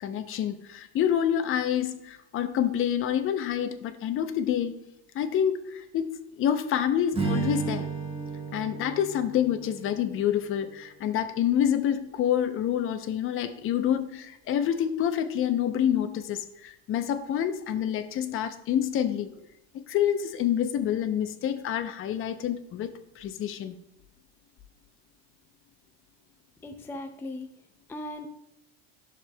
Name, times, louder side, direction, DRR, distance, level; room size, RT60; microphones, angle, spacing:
voice 1, 0.0-4.8 5.1-7.9 8.5-19.3 19.9-22.9 23.2-23.8, left 9 dB, 40° left, 9 dB, 0.7 m, -27 dB
Strum, 7.1-11.5, right 4 dB, 20° right, 1.5 m, -34 dB
voice 2, 26.6-27.5 27.9-28.3, left 2 dB, 5° left, 4 dB, 0.4 m, -37 dB
10.5 x 6.6 x 2.2 m, 0.83 s
supercardioid pair, 115°, 31 cm